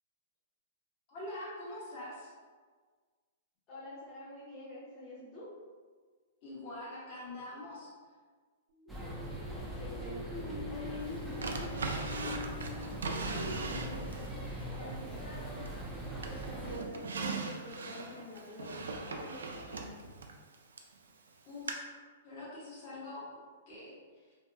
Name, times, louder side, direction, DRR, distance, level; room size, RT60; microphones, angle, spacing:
voice 1, 1.1-2.3 6.4-7.9 21.4-22.0 22.2-23.3 23.7-24.3, left 1 dB, 50° left, -8 dB, 1.2 m, -44 dB
voice 2, 3.7-5.6 9.8-10.3 10.7-11.1 11.6-12.5 13.0-15.7 16.2-19.9, left 1 dB, 25° left, -11 dB, 1.0 m, -47 dB
sound 1, 8.7-14.4, left 4 dB, 75° right, 0.8 m, -45 dB
sound 2, 8.9-16.8, right 1 dB, 5° right, 0.5 m, -41 dB
Drawer open or close, 11.4-14.3 14.8-15.9 16.2-20.9 21.7-21.8, right 4 dB, 90° right, 0.3 m, -39 dB
2.7 x 2.2 x 2.6 m, 1.5 s
hypercardioid pair, 135°, 0 cm